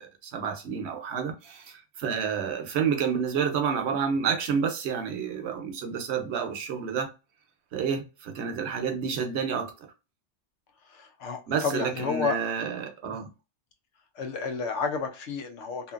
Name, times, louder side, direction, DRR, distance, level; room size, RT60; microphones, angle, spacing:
voice 1, 0.0-7.1 7.7-9.9 11.5-13.3, right 6 dB, 75° right, 0.9 m, -29 dB
voice 2, 10.9-12.4 13.1-13.2 14.2-15.9, left 5 dB, 90° left, 1.0 m, -31 dB
2.7 x 2.5 x 2.4 m
omnidirectional pair, 1.2 m